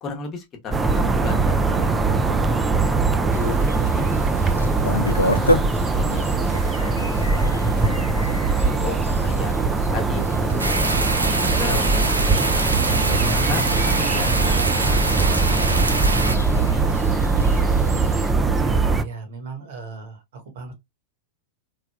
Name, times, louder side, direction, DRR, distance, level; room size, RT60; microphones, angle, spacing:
voice 1, 0.0-4.1 4.9-5.6 5.9-6.4 6.8-8.5 8.8-9.5 9.9-12.6 13.0-16.8, left 4 dB, 30° left, 1.0 m, -35 dB
sound 1, 0.7-19.0, right 3 dB, 15° right, 0.3 m, -21 dB
sound 2, 3.3-18.3, left 1 dB, 90° left, 0.3 m, -32 dB
sound 3, 10.6-16.4, right 2 dB, 90° right, 0.4 m, -24 dB
voice 2, 18.4-20.7, right 4 dB, 60° right, 1.0 m, -36 dB
3.3 x 2.2 x 2.2 m
figure-of-eight pair, 95°, 0 cm